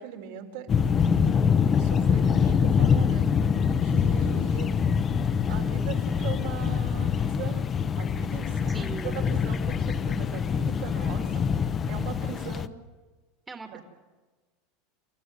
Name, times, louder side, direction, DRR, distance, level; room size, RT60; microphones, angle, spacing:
voice 1, 0.0-1.4 1.7-3.4 3.7-4.7 5.5-7.7 8.0-12.7 13.7-13.8, right 8 dB, 75° right, 3 dB, 4.4 m, -40 dB
sound 1, 0.7-12.7, left 6 dB, 25° left, 0.9 m, -24 dB
voice 2, 8.7-9.2 13.5-13.8, right 3 dB, 15° right, 5 dB, 1.8 m, -39 dB
28.5 x 14.0 x 9.3 m, 1.3 s
supercardioid pair, 135°, 0 cm